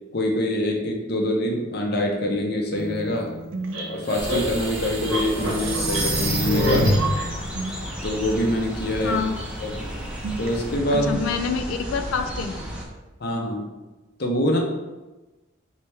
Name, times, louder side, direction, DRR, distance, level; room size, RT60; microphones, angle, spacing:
voice 1, 0.1-3.3 3.9-6.9 8.0-9.2 9.6-9.7 10.4-11.1 13.2-13.7 14.2-14.6, left 1 dB, 50° left, 1 dB, 0.7 m, -25 dB
sound 1, 2.8-6.4 6.7-9.5 9.8-10.8, right 2 dB, 65° right, 0.4 m, -39 dB
sound 2, 3.7-7.2, right 1 dB, 90° right, 1.3 m, -24 dB
sound 3, 4.2-12.8, equal, 5° right, 0.5 m, -34 dB
voice 2, 9.0-9.3 10.9-12.6, left 5 dB, 85° left, 7 dB, 0.4 m, -26 dB
4.3 x 3.3 x 3.3 m, 1.1 s
head